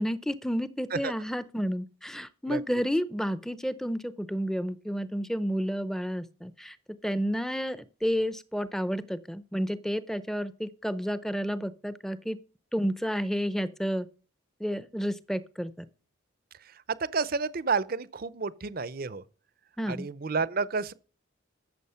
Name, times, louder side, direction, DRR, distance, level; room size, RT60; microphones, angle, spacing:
voice 1, 0.0-6.8 7.0-12.4 12.7-14.1 14.6-15.9 19.8-20.1, equal, ahead, 0.6 m, -31 dB
voice 2, 16.6-19.2 19.9-20.9, right 4 dB, 45° right, 0.6 m, -30 dB
14.0 x 7.2 x 5.7 m
head